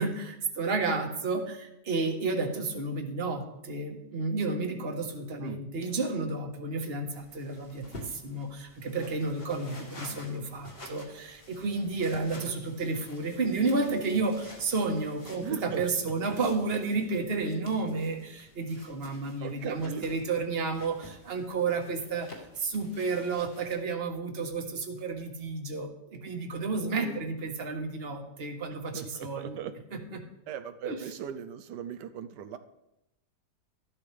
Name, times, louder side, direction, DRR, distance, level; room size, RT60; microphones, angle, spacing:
voice 1, 0.0-22.3 22.6-29.7 29.9-30.2 30.8-31.0, right 3 dB, 40° right, 4 dB, 1.4 m, -31 dB
sound 1, 7.2-23.8, left 1 dB, 35° left, 2.1 m, -50 dB
voice 2, 15.4-15.8 19.4-20.2 26.9-27.2 28.7-29.7 30.5-32.6, right 8 dB, 85° right, 9 dB, 1.3 m, -39 dB
13.5 x 12.0 x 3.3 m, 0.87 s
omnidirectional pair, 1.8 m